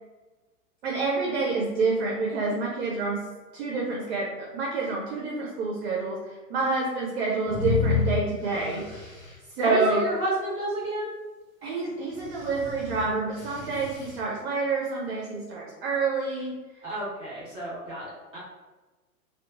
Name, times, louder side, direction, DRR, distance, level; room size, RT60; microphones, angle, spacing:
voice 1, 0.8-3.2 3.5-6.2 6.5-8.8 9.6-10.0 11.6-16.5, right 3 dB, 45° right, -3 dB, 0.5 m, -28 dB
sound 1, 7.5-9.3 12.1-14.2, left 6 dB, 15° left, 0.8 m, -31 dB
voice 2, 9.6-11.1 16.8-18.4, right 1 dB, 10° right, -8 dB, 1.4 m, -31 dB
2.8 x 2.1 x 2.4 m, 1.2 s
figure-of-eight pair, 105°, 45 cm